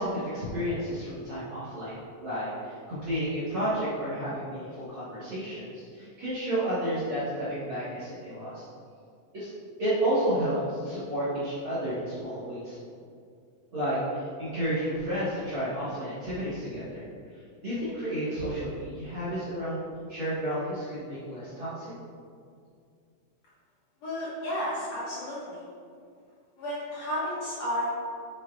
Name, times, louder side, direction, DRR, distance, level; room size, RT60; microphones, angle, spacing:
voice 1, 0.0-8.6 9.3-9.5 9.8-12.8 13.7-17.0 17.3-19.8 20.1-21.9, right 1 dB, 50° right, -12 dB, 1.6 m, -31 dB
voice 2, 24.0-25.6 26.6-27.9, equal, 55° left, -9 dB, 2.2 m, -32 dB
7.4 x 7.0 x 2.4 m, 2.3 s
omnidirectional pair, 4.2 m